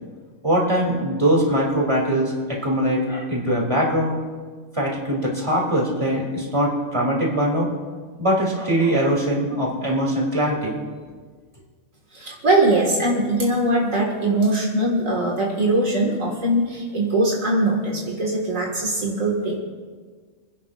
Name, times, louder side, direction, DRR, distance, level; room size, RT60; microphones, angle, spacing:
voice 1, 0.4-4.2 4.7-7.7 8.2-10.8, right 1 dB, 25° right, -3 dB, 3.0 m, -22 dB
voice 2, 12.1-19.6, right 1 dB, 75° right, -2 dB, 2.3 m, -21 dB
29.0 x 11.0 x 2.5 m, 1.5 s
omnidirectional pair, 1.4 m